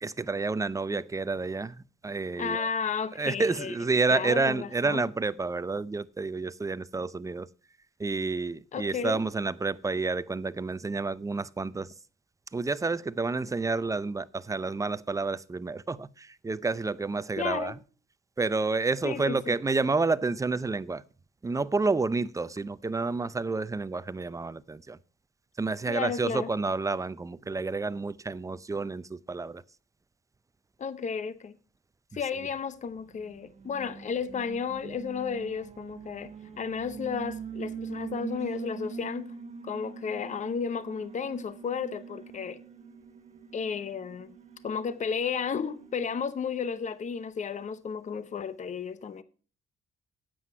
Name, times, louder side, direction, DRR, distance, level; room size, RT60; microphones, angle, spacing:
voice 1, 0.0-2.7 3.2-7.5 8.0-11.9 12.5-17.7 18.4-21.0 21.4-25.0 25.6-29.6, right 3 dB, 15° right, 0.5 m, -29 dB
voice 2, 2.4-3.7 4.1-5.0 8.7-9.2 17.4-17.8 19.0-19.6 25.9-26.5 30.8-31.5 32.1-39.3 39.6-42.6 43.5-44.3 44.6-49.2, left 6 dB, 35° left, 0.7 m, -33 dB
Alarm, 32.9-46.3, right 5 dB, 35° right, 1.2 m, -43 dB
9.4 x 7.8 x 5.5 m
cardioid pair, 90°, 20 cm